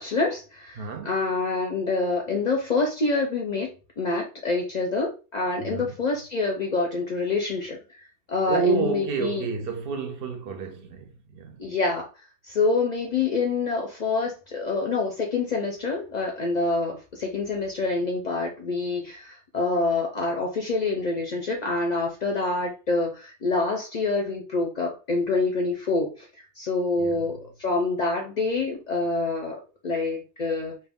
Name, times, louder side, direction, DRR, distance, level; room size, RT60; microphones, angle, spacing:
voice 1, 0.0-9.5 11.6-12.1 12.4-30.8, left 3 dB, 55° left, 0.5 m, -26 dB
voice 2, 0.8-1.2 5.6-6.0 8.5-11.6 27.0-27.1, right 5 dB, 65° right, 0.7 m, -29 dB
2.3 x 2.2 x 3.4 m
omnidirectional pair, 1.2 m